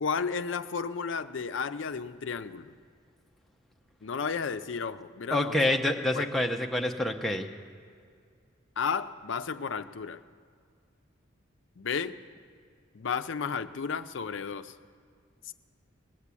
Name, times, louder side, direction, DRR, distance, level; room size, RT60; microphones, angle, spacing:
voice 1, 0.0-2.7 4.0-5.8 6.1-6.3 8.8-10.2 11.8-12.2 12.9-14.7 15.5-15.6, left 6 dB, 70° left, 10 dB, 0.5 m, -33 dB
voice 2, 5.3-7.5, left 1 dB, ahead, 1 dB, 0.7 m, -27 dB
19.5 x 7.3 x 8.3 m, 2.1 s
head